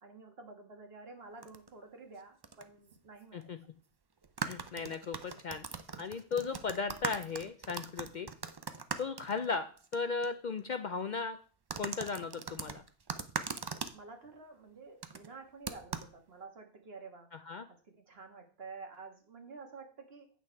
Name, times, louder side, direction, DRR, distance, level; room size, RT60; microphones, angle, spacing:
voice 1, 0.0-3.5 13.6-17.3 17.7-20.3, right 4 dB, 60° right, 4 dB, 1.7 m, -50 dB
sound 1, 1.4-1.7 2.4-2.6 2.9-3.0 4.2-10.0 10.2-10.3 11.7-14.0 15.0-15.3 15.7-16.1, right 5 dB, 40° right, 0.3 m, -40 dB
voice 2, 4.4-5.6 6.0-8.3 9.0-9.7 9.9-11.4 11.8-12.8 17.5-17.7, left 4 dB, 55° left, 9 dB, 0.6 m, -36 dB
8.6 x 6.0 x 4.5 m, 0.40 s
omnidirectional pair, 1.1 m